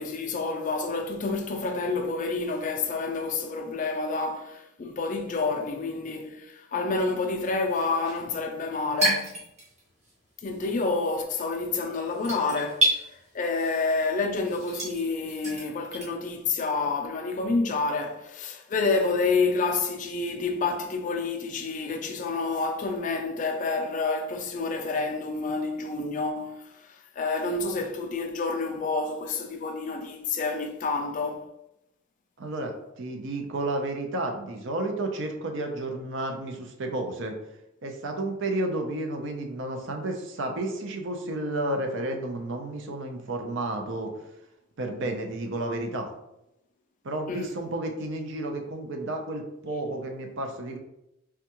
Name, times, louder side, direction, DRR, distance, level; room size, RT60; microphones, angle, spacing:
voice 1, 0.0-9.4 10.4-31.5 47.3-47.5, left 3 dB, 40° left, 0.4 m, -29 dB
sound 1, 7.5-10.1 10.4-16.1, right 1 dB, 35° right, 1.0 m, -30 dB
voice 2, 32.4-37.3 37.8-44.1 44.8-46.1 47.0-50.8, right 2 dB, 65° right, 0.5 m, -31 dB
3.4 x 2.3 x 2.9 m
head